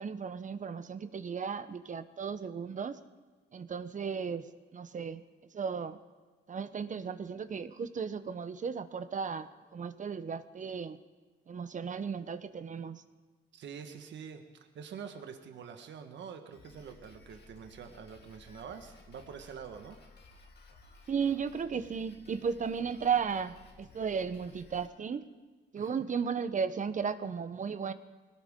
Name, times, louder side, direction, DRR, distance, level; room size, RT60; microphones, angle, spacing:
voice 1, 0.0-3.0 3.5-4.5 4.7-5.2 5.5-6.0 6.5-11.0 11.5-13.0 21.1-25.3 25.7-27.9, right 6 dB, 40° right, 12 dB, 0.9 m, -35 dB
voice 2, 13.5-14.4 14.7-20.0 25.8-26.1, right 7 dB, 65° right, 6 dB, 1.5 m, -46 dB
Drum kit, 16.5-24.9, left 3 dB, 55° left, 2.3 m, -56 dB
21.5 x 18.0 x 3.7 m, 1.3 s
cardioid pair, 90°, 20 cm